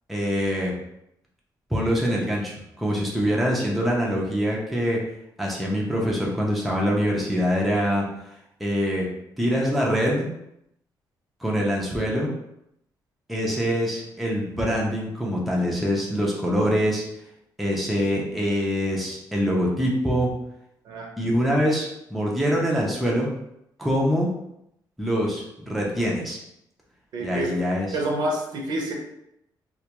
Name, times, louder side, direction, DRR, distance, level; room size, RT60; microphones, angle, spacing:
voice 1, 0.1-0.7 1.7-5.0 5.4-8.1 8.6-9.1 9.4-10.3 11.4-12.3 13.3-17.0 17.6-20.3 21.2-23.3 23.8-24.3 25.0-26.4 27.2-28.0, equal, ahead, -3 dB, 0.4 m, -24 dB
voice 2, 27.1-27.6 27.9-28.9, right 1 dB, 65° right, 0 dB, 0.5 m, -28 dB
2.2 x 2.2 x 2.8 m, 0.80 s
cardioid pair, 170°, 8 cm